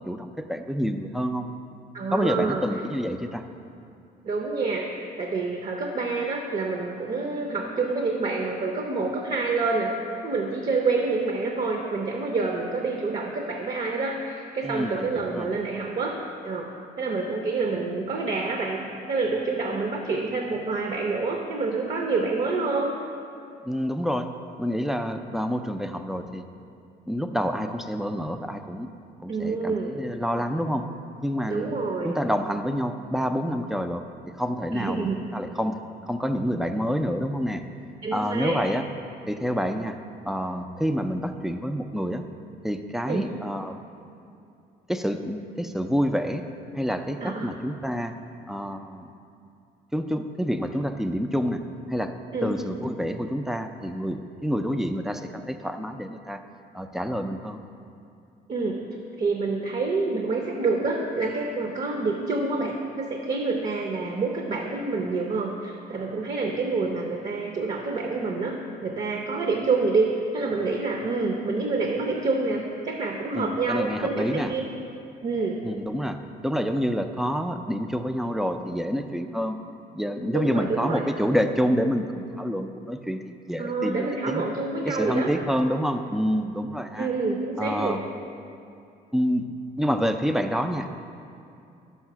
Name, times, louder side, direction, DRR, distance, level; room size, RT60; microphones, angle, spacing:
voice 1, 0.0-1.5 2.1-3.4 14.6-15.6 23.6-24.3 24.6-26.4 27.1-28.9 29.2-30.9 31.2-31.8 32.0-34.0 34.4-37.6 38.1-38.8 39.3-40.0 40.3-42.2 42.6-43.8 44.9-46.5 46.7-48.2 48.5-49.1 49.9-51.6 51.9-52.1 52.4-56.4 56.7-57.6 73.3-74.5 75.6-79.6 79.9-84.4 84.9-87.1 87.6-88.0 89.1-90.9, equal, ahead, 8 dB, 0.3 m, -28 dB
voice 2, 1.9-2.6 4.2-4.9 5.2-9.9 10.2-16.2 16.4-22.9 29.3-30.0 31.5-32.2 34.7-35.2 38.0-38.6 43.1-43.2 47.2-47.5 52.3-52.5 58.5-58.8 59.2-68.5 68.8-74.6 75.2-75.6 80.3-81.0 83.6-85.3 87.0-88.0, right 3 dB, 40° right, 2 dB, 0.7 m, -27 dB
5.6 x 5.4 x 5.9 m, 2.6 s
cardioid pair, 110°, 17 cm